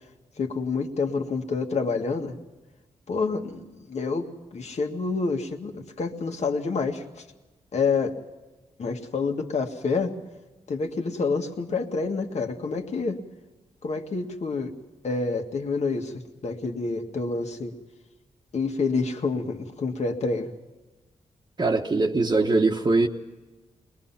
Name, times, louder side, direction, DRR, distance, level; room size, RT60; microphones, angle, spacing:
voice 1, 0.4-2.4 3.1-7.2 7.7-8.2 8.8-10.2 10.7-13.2 13.8-14.7 15.0-17.7 18.5-20.5, left 4 dB, 60° left, 4 dB, 1.9 m, -28 dB
voice 2, 21.6-23.1, right 3 dB, 35° right, 0 dB, 1.2 m, -22 dB
22.0 x 20.5 x 5.9 m, 1.2 s
cardioid pair, 80°, 13 cm